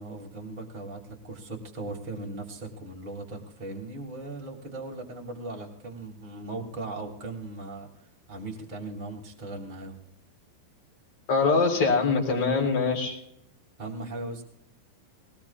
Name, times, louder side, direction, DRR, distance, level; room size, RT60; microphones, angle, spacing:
voice 1, 0.0-7.9 8.3-10.0 13.8-14.4, right 2 dB, 15° right, -1 dB, 1.5 m, -38 dB
voice 2, 11.3-13.2, left 4 dB, 30° left, -1 dB, 4.3 m, -23 dB
21.0 x 20.0 x 2.4 m, 0.73 s
omnidirectional pair, 5.5 m